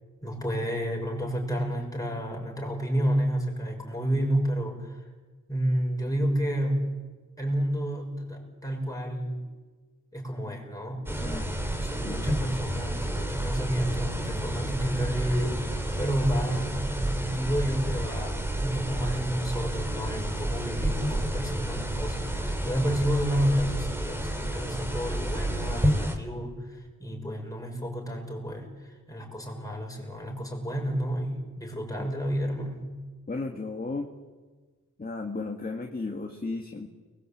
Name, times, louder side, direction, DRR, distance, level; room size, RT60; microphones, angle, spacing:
voice 1, 0.2-5.0 5.5-6.9 7.4-9.4 10.1-33.0, equal, 10° left, 0 dB, 6.3 m, -30 dB
sound 1, 11.1-26.2, right 1 dB, 5° right, 3.2 m, -30 dB
voice 2, 33.3-34.1 35.0-36.9, left 3 dB, 30° left, 2 dB, 2.0 m, -34 dB
30.0 x 21.5 x 8.7 m, 1.4 s
wide cardioid pair, 140°, 31 cm